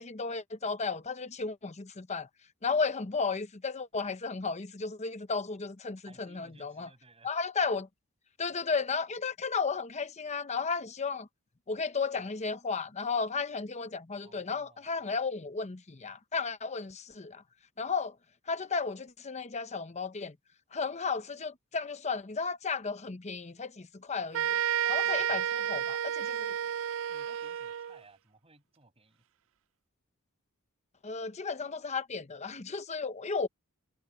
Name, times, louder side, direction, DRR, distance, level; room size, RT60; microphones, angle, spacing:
voice 1, 0.0-2.3 2.6-6.9 7.2-7.9 8.4-11.3 11.7-17.4 17.8-18.1 18.5-20.3 20.7-24.6 24.9-25.4 25.7-26.5 31.0-33.5, left 4 dB, 30° left, 0.8 m, -34 dB
voice 2, 6.0-7.3 14.2-15.2 24.8-25.9 26.6-26.7 27.1-29.2 31.8-31.9, right 3 dB, 25° right, 7.7 m, -59 dB
sound 1, 24.3-28.0, right 10 dB, 65° right, 0.5 m, -31 dB
head